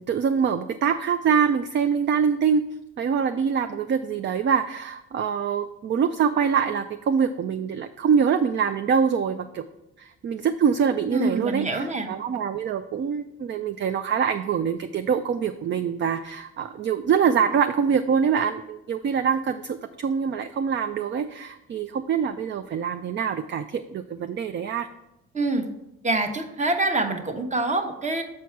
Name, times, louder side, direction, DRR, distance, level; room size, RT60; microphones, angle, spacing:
voice 1, 0.0-2.6 3.0-9.7 10.0-24.9, right 7 dB, 40° right, 8 dB, 0.4 m, -24 dB
voice 2, 11.1-12.1 25.3-25.7 26.0-28.2, right 2 dB, 25° right, 6 dB, 0.9 m, -25 dB
7.2 x 4.6 x 4.5 m, 0.90 s
cardioid pair, 90°, 30 cm